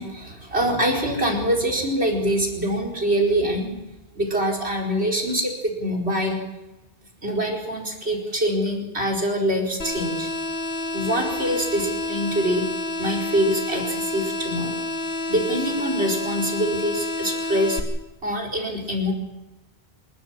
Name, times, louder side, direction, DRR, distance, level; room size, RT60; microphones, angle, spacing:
voice 1, 0.0-3.8 4.1-6.4 7.2-10.3 10.9-12.6 13.0-14.8 15.3-17.8 18.2-19.1, equal, 75° right, 2 dB, 5.0 m, -24 dB
sound 1, 9.8-17.8, left 2 dB, 65° left, 2.2 m, -29 dB
27.5 x 13.0 x 7.4 m, 1.0 s
omnidirectional pair, 1.1 m